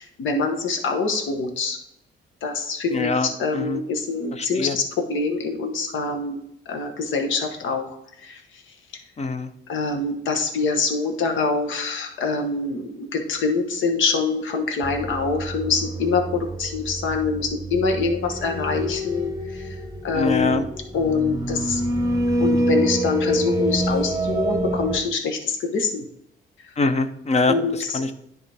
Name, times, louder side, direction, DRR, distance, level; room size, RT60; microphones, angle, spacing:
voice 1, 0.0-1.8 2.4-6.4 6.6-8.6 9.7-19.7 20.0-20.6 20.9-21.8 22.4-26.0 27.5-28.0, left 4 dB, 75° left, 4 dB, 1.2 m, -25 dB
voice 2, 2.9-3.8 4.4-4.8 9.2-9.5 20.1-20.6 26.8-27.6 27.9-28.1, left 3 dB, 35° left, 11 dB, 0.7 m, -23 dB
sound 1, 14.8-25.0, equal, 20° right, 0.9 m, -26 dB
10.0 x 4.2 x 3.4 m, 0.75 s
cardioid pair, 90°, 20 cm